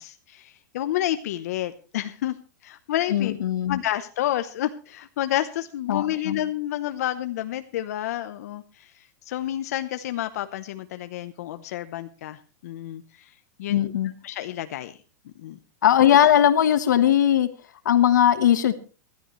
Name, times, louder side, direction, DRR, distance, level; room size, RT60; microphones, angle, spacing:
voice 1, 0.0-2.4 2.6-3.3 3.7-13.9 14.2-15.0 15.2-15.6, left 13 dB, 60° left, 9 dB, 0.9 m, -30 dB
voice 2, 3.1-3.8 5.9-6.4 13.7-14.1 15.8-17.5 17.8-18.7, left 10 dB, 90° left, 11 dB, 1.3 m, -19 dB
21.0 x 13.0 x 3.2 m, 0.36 s
supercardioid pair, 160°, 10 cm